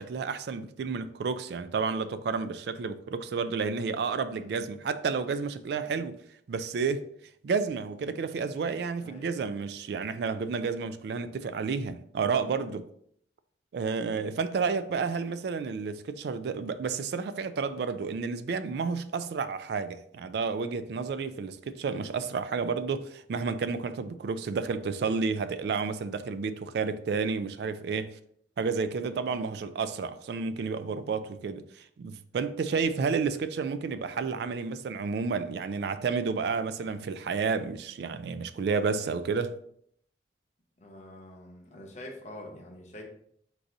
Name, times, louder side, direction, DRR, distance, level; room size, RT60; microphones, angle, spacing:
voice 1, 0.0-6.2 6.5-7.1 7.4-12.9 13.7-28.2 28.6-39.6, right 5 dB, 65° right, 0.3 m, -31 dB
voice 2, 4.3-4.7 9.0-9.4 13.9-14.3 29.3-29.7 32.7-32.9 40.8-43.0, left 1 dB, 40° left, 0.8 m, -47 dB
4.6 x 2.6 x 3.7 m
head